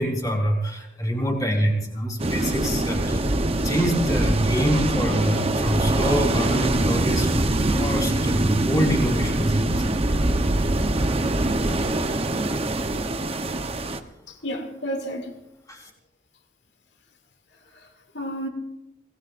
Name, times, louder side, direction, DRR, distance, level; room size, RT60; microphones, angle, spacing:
voice 1, 0.0-3.3 3.6-7.4 7.7-10.0 15.7-15.9, equal, 20° left, 4.0 m, -25 dB
sound 1, 2.2-14.0, right 1 dB, 30° right, 0.8 m, -23 dB
voice 2, 14.3-15.3 17.7-18.5, equal, 65° left, 2.5 m, -32 dB
26.5 x 18.5 x 2.5 m
head